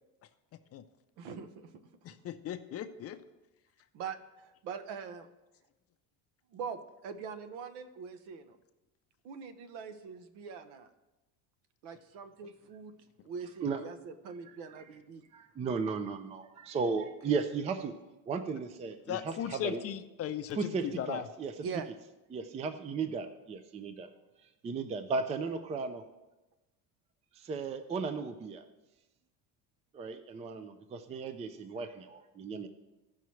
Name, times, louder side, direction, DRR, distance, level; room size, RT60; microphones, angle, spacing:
voice 1, 1.2-1.7 3.9-5.3 6.5-8.6 9.2-10.9 11.8-12.9 13.2-15.2 16.8-17.1 21.6-21.9, right 6 dB, 70° right, 10 dB, 1.0 m, -43 dB
voice 2, 2.0-3.2 19.1-21.2, left 10 dB, 35° left, 9 dB, 0.5 m, -37 dB
voice 3, 15.3-17.9 18.3-19.8 20.5-21.5 22.3-24.1 24.6-26.0 27.3-28.6 29.9-32.7, right 4 dB, 20° right, 10 dB, 0.3 m, -35 dB
16.0 x 5.8 x 3.1 m, 1.0 s
cardioid pair, 135°, 41 cm